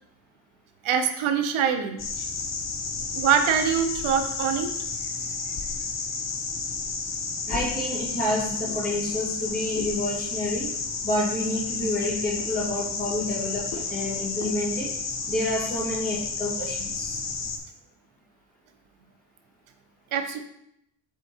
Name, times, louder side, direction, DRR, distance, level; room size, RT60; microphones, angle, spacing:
voice 1, 0.8-2.0 3.1-4.7 20.1-20.4, right 7 dB, 80° right, 7 dB, 0.8 m, -24 dB
sound 1, 2.0-17.6, left 4 dB, 35° left, 0.6 m, -31 dB
voice 2, 7.4-10.7 11.0-14.9 15.3-17.2, left 1 dB, 20° left, -5 dB, 1.9 m, -29 dB
7.5 x 3.5 x 4.2 m, 0.78 s
wide cardioid pair, 170°, 48 cm